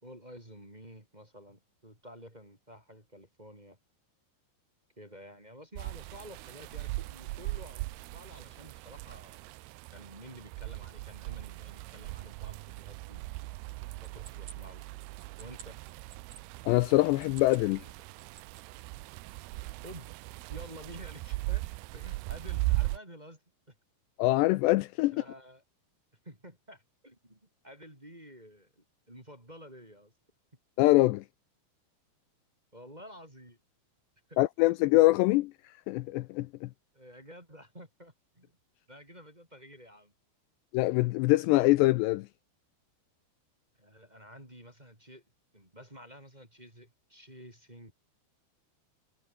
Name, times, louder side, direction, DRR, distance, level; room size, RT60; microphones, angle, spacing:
voice 1, 0.0-3.8 5.0-9.4 9.9-13.2 14.0-14.8 15.4-15.8 19.6-20.2 20.5-23.4 23.7-23.8 25.1-25.6 26.2-30.1 32.7-33.6 34.3-34.4 36.9-38.6 38.9-40.1 43.7-45.2 45.5-47.9, equal, 10° right, 4.2 m, -51 dB
sound 1, 5.7-23.0, right 21 dB, 85° right, 2.3 m, -38 dB
sound 2, 13.6-16.4 17.1-17.7 18.0-18.8, right 7 dB, 45° right, 4.1 m, -53 dB
voice 2, 16.7-17.8 24.2-25.2 30.8-31.2 34.4-35.5 35.9-36.7 40.7-42.3, left 19 dB, 80° left, 2.7 m, -24 dB
omnidirectional pair, 5.2 m